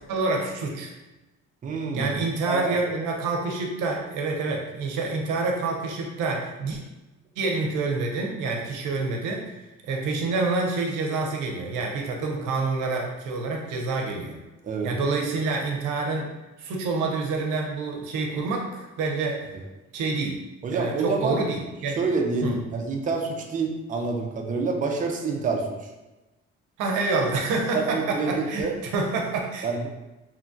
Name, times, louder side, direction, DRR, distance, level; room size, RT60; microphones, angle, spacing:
voice 1, 0.1-0.9 1.9-6.8 7.4-9.4 9.8-14.4 14.8-16.3 16.6-19.4 19.9-20.4 20.7-22.0 22.4-22.6 26.8-29.9, right 3 dB, 85° right, 0 dB, 0.6 m, -27 dB
voice 2, 1.6-2.1 2.5-2.8 14.6-14.9 20.6-21.4 22.0-25.7 27.7-28.7 29.6-29.9, right 4 dB, 25° right, 2 dB, 0.4 m, -27 dB
2.8 x 2.2 x 2.5 m, 1.1 s
cardioid pair, 90°, 30 cm